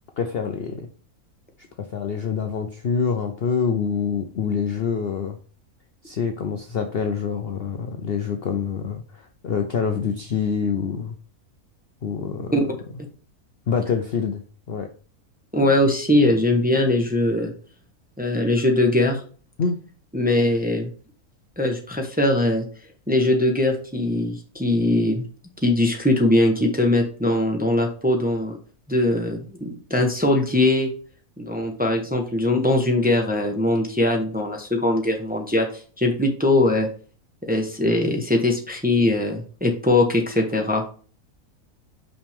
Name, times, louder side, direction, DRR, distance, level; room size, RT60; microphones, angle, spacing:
voice 1, 0.2-0.9 1.8-5.4 6.0-11.2 12.0-12.5 13.7-14.4 14.7-14.9 19.6-19.8, left 6 dB, 55° left, 5 dB, 0.7 m, -26 dB
voice 2, 15.5-17.5 18.2-19.2 20.1-20.9 21.6-22.6 23.1-25.3 25.6-28.6 28.9-30.9 31.4-35.7 36.0-36.9 37.5-40.8, left 1 dB, 5° right, 2 dB, 0.9 m, -21 dB
5.7 x 5.4 x 3.5 m, 0.40 s
omnidirectional pair, 1.6 m